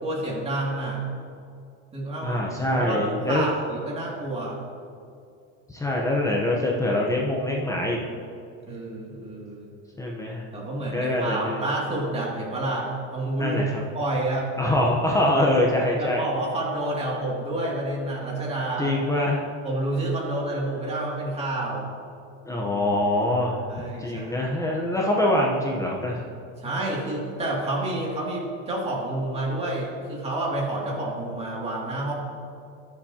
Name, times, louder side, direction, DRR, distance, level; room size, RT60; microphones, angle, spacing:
voice 1, 0.0-1.0 1.9-2.4 2.7-4.6 8.7-9.7 10.5-13.6 13.9-14.5 16.0-18.9 19.6-21.8 23.7-24.4 26.6-32.1, right 1 dB, 15° right, -4 dB, 2.4 m, -29 dB
voice 2, 2.2-3.5 5.7-8.0 10.0-10.4 10.9-11.6 13.4-13.8 14.6-16.2 18.8-19.4 22.4-23.6 24.0-26.2, left 1 dB, 10° left, -2 dB, 0.8 m, -24 dB
20.0 x 7.2 x 2.9 m, 2.4 s
supercardioid pair, 145°, 37 cm